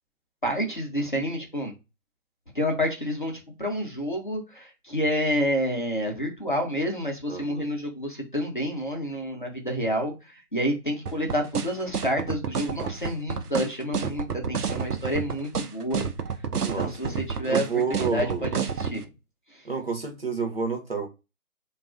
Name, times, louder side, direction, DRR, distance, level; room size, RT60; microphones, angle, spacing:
voice 1, 0.4-1.7 2.5-10.1 10.5-16.0 16.6-18.3 18.8-19.0, equal, 35° left, 0.6 m, -29 dB
voice 2, 7.3-7.7 16.6-17.2 17.5-18.5 19.6-21.1, right 5 dB, 40° right, 0.7 m, -30 dB
sound 1, 11.1-19.0, right 6 dB, 85° right, 0.6 m, -29 dB
2.6 x 2.3 x 2.4 m
figure-of-eight pair, 155°, 45 cm